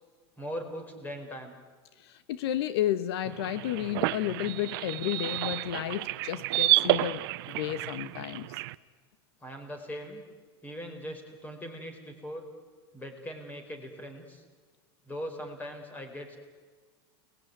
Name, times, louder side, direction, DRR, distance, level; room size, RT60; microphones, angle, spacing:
voice 1, 0.4-1.5 9.4-10.2 10.6-12.5 12.9-14.4 15.1-16.4, equal, 10° left, 5 dB, 4.6 m, -40 dB
voice 2, 2.0-8.6, left 12 dB, 75° left, 12 dB, 1.2 m, -32 dB
sound 1, 3.3-8.7, right 18 dB, 65° right, 0.8 m, -30 dB
29.5 x 20.5 x 9.4 m, 1.4 s
supercardioid pair, 150°, 14 cm